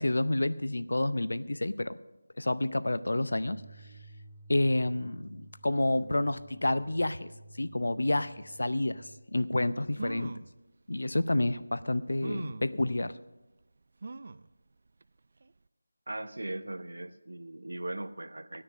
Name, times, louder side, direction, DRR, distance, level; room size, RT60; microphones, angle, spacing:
voice 1, 0.0-2.0 2.4-3.6 4.5-7.3 7.6-10.3 10.9-13.1, left 2 dB, 80° left, 14 dB, 0.6 m, -29 dB
sound 1, 3.3-9.2, right 2 dB, 15° right, 1.9 m, -52 dB
sound 2, 9.5-9.6 9.9-10.5 11.3-11.4 12.2-12.7 14.0-14.5 15.0-15.1 15.4-15.5, right 3 dB, 40° right, 0.3 m, -40 dB
voice 2, 16.1-18.6, right 1 dB, 85° right, 12 dB, 0.9 m, -39 dB
13.5 x 9.9 x 6.2 m, 1.1 s
figure-of-eight pair, 175°, 0 cm